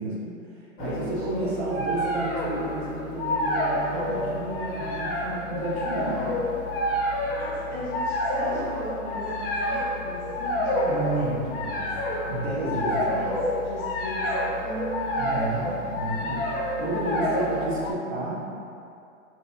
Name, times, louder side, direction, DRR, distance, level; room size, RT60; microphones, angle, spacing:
voice 1, 0.0-6.4 10.9-12.0 12.2-13.3 15.2-18.4, right 2 dB, 50° right, -6 dB, 0.8 m, -31 dB
sound 1, 0.8-17.9, left 1 dB, 45° left, 0.6 m, -28 dB
voice 2, 0.8-1.6 5.9-6.6 7.4-11.0 12.7-15.6, equal, ahead, -18 dB, 0.6 m, -38 dB
3.2 x 2.6 x 2.6 m, 2.5 s
hypercardioid pair, 150°, 41 cm